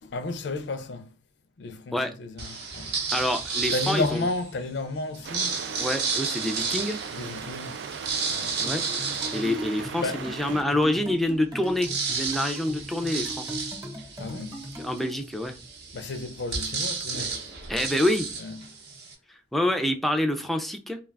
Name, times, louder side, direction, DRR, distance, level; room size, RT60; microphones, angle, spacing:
voice 1, 0.0-1.2 1.6-2.9 3.7-5.7 7.1-7.9 8.3-8.6 10.0-10.3 14.2-14.6 15.9-17.6 18.3-18.7, left 2 dB, 75° left, 0.5 m, -33 dB
sound 1, 2.4-4.5 5.1-10.3 10.8-10.9 11.1-19.1, right 5 dB, 65° right, 0.7 m, -32 dB
voice 2, 3.1-4.2 5.8-7.0 8.6-8.8 9.3-13.5 14.8-15.5 17.7-18.3 19.5-21.0, left 1 dB, ahead, 0.3 m, -27 dB
sound 2, 5.2-10.6, right 7 dB, 80° right, 0.3 m, -38 dB
sound 3, 8.6-15.2, equal, 25° right, 0.9 m, -39 dB
2.3 x 2.2 x 3.3 m
head